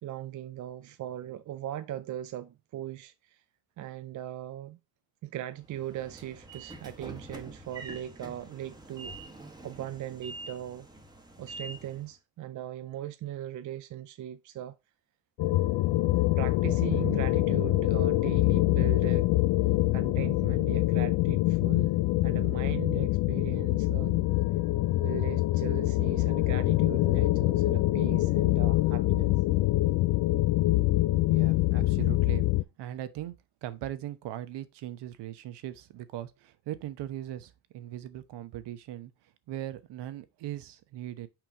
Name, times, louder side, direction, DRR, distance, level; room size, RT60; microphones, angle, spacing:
voice 1, 0.0-3.4 3.8-4.8 5.2-9.2 9.6-10.9 11.4-14.8 16.4-19.3 19.9-22.0 22.2-24.2 25.0-29.3, right 12 dB, 40° right, 0.5 m, -39 dB
Train / Sliding door, 5.6-12.1, right 2 dB, 10° right, 1.3 m, -46 dB
sound 1, 15.4-32.6, left 18 dB, 55° left, 0.5 m, -25 dB
voice 2, 31.3-32.4 32.8-33.3 33.6-41.3, right 12 dB, 60° right, 1.0 m, -39 dB
6.1 x 4.9 x 3.6 m
supercardioid pair, 85°, 48 cm